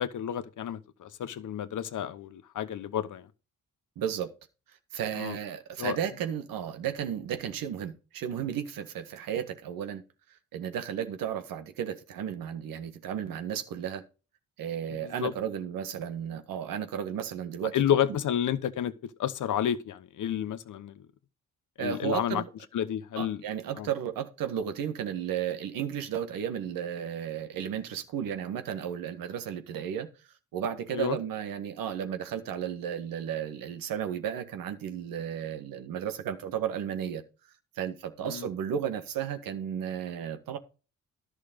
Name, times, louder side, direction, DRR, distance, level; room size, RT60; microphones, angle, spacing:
voice 1, 0.0-3.3 5.2-5.4 5.8-6.0 15.0-15.3 17.7-18.9 19.2-21.0 21.8-22.4 22.7-23.4 23.8-23.9 30.9-31.2 38.2-38.5, left 10 dB, 65° left, 1.0 m, -30 dB
voice 2, 3.9-4.3 4.9-10.0 10.5-14.0 14.6-17.8 21.8-22.5 23.2-30.1 30.5-37.2 37.7-40.6, right 9 dB, 80° right, 1.6 m, -33 dB
11.0 x 6.5 x 5.2 m
cardioid pair, 70°, 34 cm